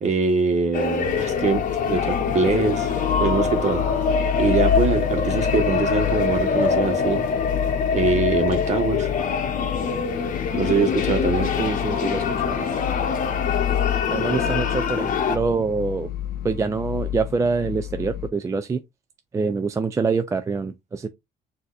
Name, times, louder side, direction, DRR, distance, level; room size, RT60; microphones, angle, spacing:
voice 1, 0.0-2.9 3.2-3.8 4.4-7.2 7.9-9.1 10.5-11.5, right 4 dB, 45° right, 1.2 m, -23 dB
sound 1, 0.7-15.4, left 5 dB, 50° left, 0.9 m, -24 dB
sound 2, 1.0-18.3, left 12 dB, 70° left, 0.4 m, -29 dB
voice 2, 11.6-12.7 14.1-16.1 16.4-18.8 19.3-21.1, right 4 dB, 20° right, 0.3 m, -25 dB
6.2 x 2.7 x 2.4 m
cardioid pair, 110°, 17 cm